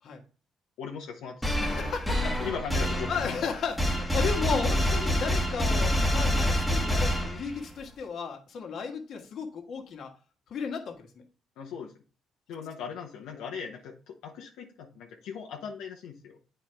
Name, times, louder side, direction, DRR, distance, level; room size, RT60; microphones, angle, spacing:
voice 1, 0.8-1.4 1.7-1.9 2.4-3.5 11.6-11.9 12.5-16.4, left 6 dB, 85° left, 0 dB, 1.0 m, -39 dB
sound 1, 1.4-7.8, equal, ahead, 1.3 m, -27 dB
voice 2, 1.6-2.5 3.1-10.1 10.5-11.1 13.3-13.4, left 6 dB, 60° left, 3 dB, 1.6 m, -34 dB
8.7 x 4.5 x 3.4 m, 0.38 s
cardioid pair, 100°, 0 cm